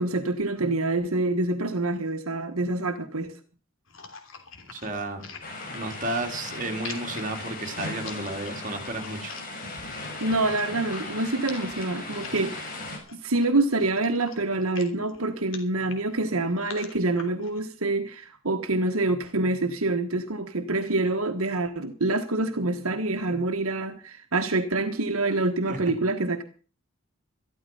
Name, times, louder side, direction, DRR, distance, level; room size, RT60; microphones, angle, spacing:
voice 1, 0.0-3.4 10.2-12.8 13.2-26.4, right 2 dB, 80° right, 1.4 m, -26 dB
sound 1, 3.9-17.6, left 5 dB, 65° left, 3.2 m, -45 dB
voice 2, 4.7-5.2 5.7-9.3 25.7-25.8, right 2 dB, 35° right, 3.4 m, -32 dB
sound 2, 5.4-13.0, left 2 dB, 40° left, 5.2 m, -37 dB
14.0 x 12.5 x 5.5 m
head